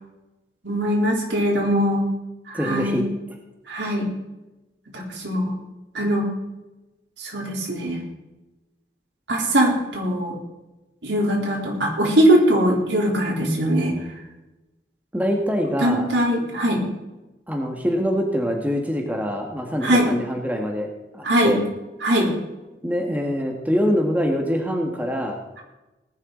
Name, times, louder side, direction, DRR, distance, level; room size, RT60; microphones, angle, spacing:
voice 1, 0.6-2.0 2.5-3.1 3.7-4.1 4.9-5.5 5.9-6.3 7.2-8.0 9.3-10.4 11.0-13.9 15.8-16.8 19.8-20.1 21.2-21.5 22.0-22.3, equal, 90° right, -1 dB, 3.7 m, -21 dB
voice 2, 2.5-3.1 15.1-16.1 17.5-21.6 22.8-25.4, equal, 10° right, 2 dB, 1.6 m, -24 dB
18.5 x 10.5 x 3.9 m, 1.0 s
head